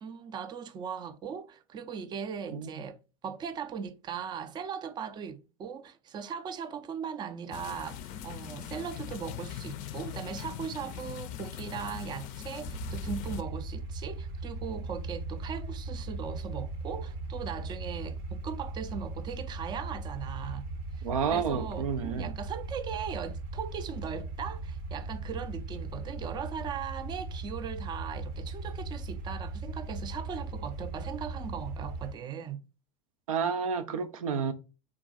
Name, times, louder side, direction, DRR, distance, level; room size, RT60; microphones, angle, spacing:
voice 1, 0.0-20.6 20.9-32.6, right 7 dB, 25° right, 0.4 m, -39 dB
sound 1, 7.5-13.4, left 10 dB, 50° left, 0.4 m, -40 dB
sound 2, 12.7-32.1, right 2 dB, 55° right, 0.7 m, -38 dB
voice 2, 21.0-22.3 33.3-34.5, right 6 dB, 80° right, 0.5 m, -30 dB
3.6 x 2.3 x 3.8 m
hypercardioid pair, 85°, 17 cm